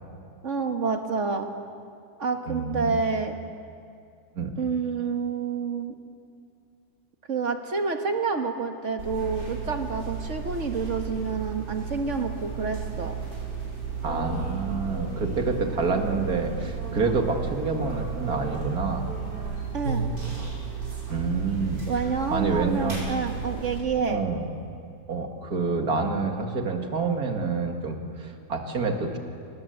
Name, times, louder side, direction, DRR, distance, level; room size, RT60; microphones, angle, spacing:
voice 1, 0.4-1.5 2.2-3.4 4.6-6.0 7.3-13.1 19.7-20.1 21.9-24.2, right 5 dB, 50° right, 5 dB, 1.8 m, -28 dB
voice 2, 2.5-3.0 4.3-4.5 14.0-19.1 21.1-21.8 22.3-23.1 24.1-24.5 25.1-29.2, right 4 dB, 65° right, 4 dB, 2.5 m, -27 dB
sound 1, 9.0-23.8, right 5 dB, 85° right, 5.8 m, -33 dB
26.0 x 19.5 x 7.9 m, 2.4 s
omnidirectional pair, 1.7 m